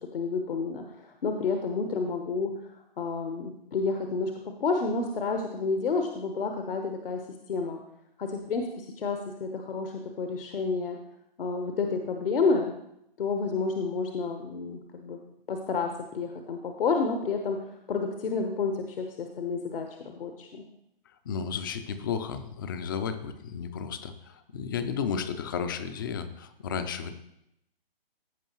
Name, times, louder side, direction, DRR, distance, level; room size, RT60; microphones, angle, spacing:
voice 1, 0.1-2.7 3.0-4.3 4.6-7.2 7.5-7.8 8.2-11.0 11.4-12.7 13.2-15.2 15.5-20.6, left 4 dB, 70° left, 4 dB, 1.0 m, -30 dB
voice 2, 21.2-27.1, left 6 dB, 25° left, 10 dB, 0.4 m, -33 dB
15.0 x 5.1 x 3.0 m, 0.80 s
hypercardioid pair, 140°, 29 cm